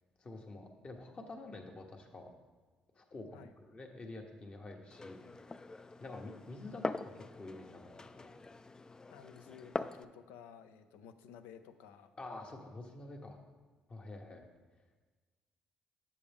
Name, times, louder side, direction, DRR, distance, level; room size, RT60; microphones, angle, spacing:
voice 1, 0.2-2.3 3.0-5.4 6.0-8.3 12.2-13.4 13.9-14.5, left 2 dB, 40° left, 2 dB, 1.2 m, -48 dB
Glass, 4.9-10.0, left 3 dB, 20° left, 0.3 m, -43 dB
voice 2, 9.1-12.2, left 8 dB, 80° left, 9 dB, 0.5 m, -54 dB
7.0 x 7.0 x 3.5 m, 1.3 s
supercardioid pair, 60°, 3 cm